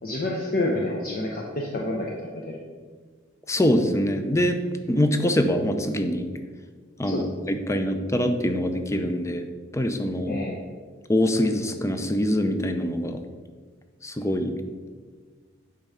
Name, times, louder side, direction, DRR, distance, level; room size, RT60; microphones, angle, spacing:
voice 1, 0.0-2.6 7.0-7.3 7.7-7.8 10.3-10.6, left 1 dB, 45° left, -1 dB, 0.8 m, -29 dB
voice 2, 3.5-4.6 4.9-6.3 7.0-9.5 9.7-10.4 11.1-13.2 14.0-14.5, left 1 dB, 15° left, 7 dB, 0.5 m, -24 dB
8.6 x 3.6 x 5.6 m, 1.5 s
head